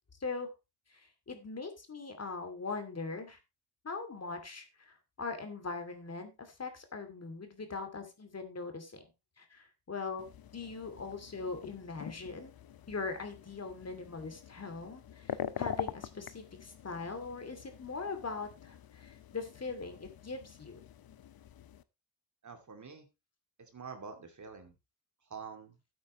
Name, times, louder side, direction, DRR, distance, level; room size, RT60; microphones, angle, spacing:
voice 1, 0.9-3.4 3.8-9.0 9.4-10.3 10.5-12.5 12.9-20.8, left 4 dB, 35° left, 7 dB, 2.5 m, -41 dB
sound 1, 10.2-21.8, left 10 dB, 55° left, 0.8 m, -45 dB
voice 2, 22.4-23.1 23.6-24.7 25.2-25.8, right 5 dB, 45° right, 6 dB, 2.5 m, -47 dB
12.0 x 8.7 x 3.0 m, 0.25 s
cardioid pair, 90°, 42 cm